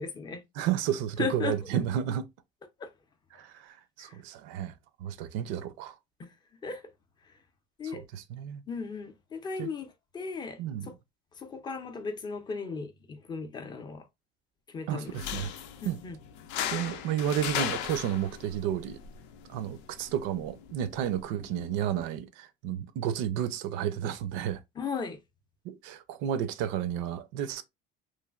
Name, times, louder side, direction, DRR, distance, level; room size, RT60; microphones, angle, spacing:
voice 1, 0.0-0.4 1.2-1.6 2.8-2.9 6.6-6.8 7.8-8.0 8.7-9.9 10.1-10.6 11.4-14.0 14.7-15.1 15.8-16.2 24.8-25.2, left 5 dB, 25° left, 0.4 m, -36 dB
voice 2, 0.5-2.3 3.3-4.7 5.0-5.9 7.8-8.6 9.6-9.7 10.6-10.9 14.9-15.5 15.8-16.0 16.7-19.0 19.5-24.6 25.6-27.6, right 10 dB, 80° right, 0.5 m, -32 dB
sound 1, 15.1-22.1, left 10 dB, 80° left, 0.5 m, -38 dB
3.1 x 2.5 x 2.3 m
cardioid pair, 165°, 19 cm